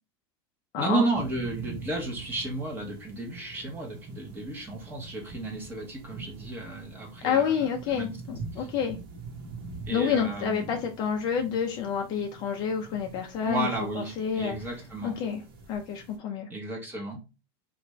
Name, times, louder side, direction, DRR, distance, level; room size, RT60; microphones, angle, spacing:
voice 1, 0.8-7.5 7.9-8.2 8.6-8.7 9.9-10.8 13.4-15.2 16.5-17.2, right 2 dB, 15° right, 0 dB, 0.9 m, -33 dB
sound 1, 1.1-16.2, right 3 dB, 70° right, 1.1 m, -44 dB
voice 2, 7.2-9.0 9.9-13.7 13.9-14.6 15.0-15.4 15.7-16.5, left 7 dB, 35° left, 3 dB, 0.4 m, -28 dB
3.3 x 2.5 x 3.1 m, 0.27 s
supercardioid pair, 165°, 13 cm